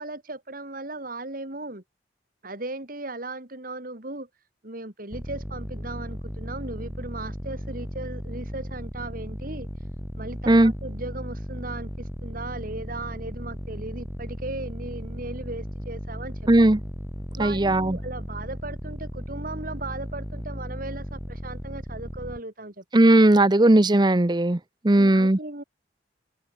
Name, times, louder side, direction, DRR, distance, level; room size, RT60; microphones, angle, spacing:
voice 1, 0.0-1.8 2.4-4.3 4.6-9.7 10.2-16.5 17.3-23.1 24.9-25.6, right 2 dB, 50° right, 3.2 m, -37 dB
sound 1, 5.1-22.4, equal, 5° right, 2.1 m, -36 dB
voice 2, 16.5-16.8 17.4-18.0 22.9-24.6 24.8-25.4, right 1 dB, 25° right, 0.7 m, -17 dB
head